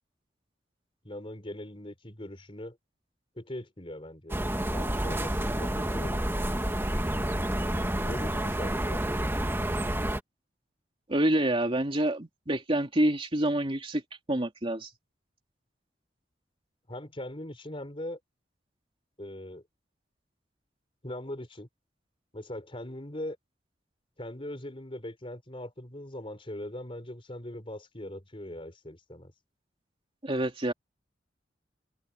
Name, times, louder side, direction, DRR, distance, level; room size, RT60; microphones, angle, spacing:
voice 1, 1.0-2.8 3.4-4.4 4.7-6.5 8.0-9.0 16.9-18.2 19.2-19.6 21.0-21.7 22.3-23.4 24.2-29.3, left 1 dB, 30° left, 4.3 m, -40 dB
sound 1, 4.3-10.2, right 1 dB, 15° right, 2.2 m, -29 dB
voice 2, 11.1-14.0 14.3-14.9 30.2-30.7, right 1 dB, 30° right, 2.8 m, -27 dB
head